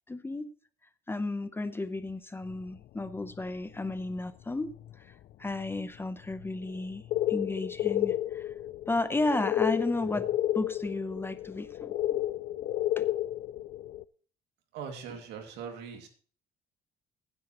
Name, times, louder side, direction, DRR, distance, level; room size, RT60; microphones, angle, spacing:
voice 1, 0.1-0.5 1.1-4.7 5.0-5.1 5.4-7.0 7.3-8.5 8.9-12.2 13.0-13.1, left 2 dB, 15° left, 12 dB, 0.7 m, -33 dB
sound 1, 2.5-3.4 3.8-4.2 4.7-4.9 5.3-5.4 5.6-5.8 6.2-14.0, left 13 dB, 60° left, 0.4 m, -32 dB
voice 2, 14.7-16.1, right 6 dB, 85° right, 5 dB, 2.4 m, -41 dB
15.0 x 9.8 x 3.0 m, 0.43 s
cardioid pair, 110°, 17 cm